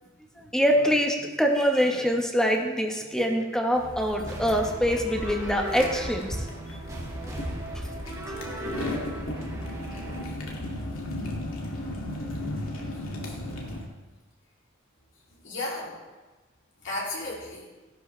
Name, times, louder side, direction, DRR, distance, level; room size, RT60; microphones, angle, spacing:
voice 1, 0.0-0.5 8.7-8.8 10.2-10.4 12.9-13.4 15.4-16.0 16.8-17.7, left 2 dB, 65° left, -5 dB, 2.9 m, -36 dB
voice 2, 0.5-6.5 7.2-7.3, equal, 5° left, 1 dB, 1.3 m, -24 dB
sound 1, 3.7-13.8, left 1 dB, 80° left, 2.4 m, -35 dB
sound 2, 4.3-10.2, right 1 dB, 20° right, 2.2 m, -37 dB
15.0 x 12.0 x 3.3 m, 1.2 s
head